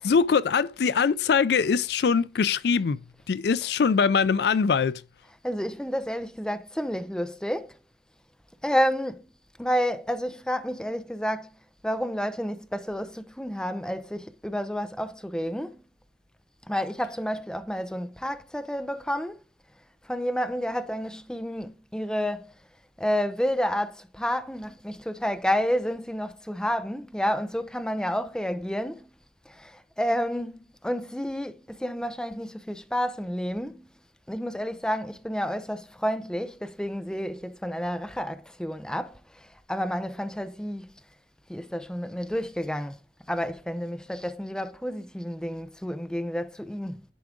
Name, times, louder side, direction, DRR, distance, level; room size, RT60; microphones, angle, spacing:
voice 1, 0.0-5.0, left 5 dB, 60° left, 0.4 m, -23 dB
voice 2, 5.3-7.8 8.6-9.2 9.6-11.5 11.8-15.8 16.7-19.4 20.0-22.5 23.0-29.1 29.5-33.9 34.3-40.9 41.5-43.0 43.3-47.0, equal, 5° left, 0.6 m, -30 dB
11.0 x 4.8 x 3.7 m
head